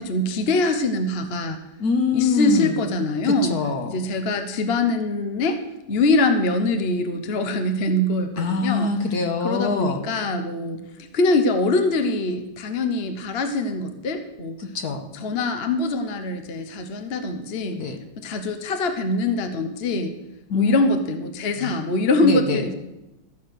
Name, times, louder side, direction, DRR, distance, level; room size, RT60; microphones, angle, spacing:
voice 1, 0.0-1.6 2.1-3.5 3.8-5.6 5.9-8.9 9.4-10.8 11.1-14.6 15.1-17.8 18.2-20.1 20.5-22.7, left 2 dB, 40° left, 7 dB, 1.0 m, -23 dB
voice 2, 1.8-2.8 3.2-4.0 8.4-10.0 14.6-15.1 17.7-18.0 20.5-20.8 21.6-21.7 22.2-22.7, left 4 dB, 60° left, 5 dB, 1.5 m, -24 dB
14.5 x 7.3 x 6.4 m, 0.96 s
omnidirectional pair, 2.0 m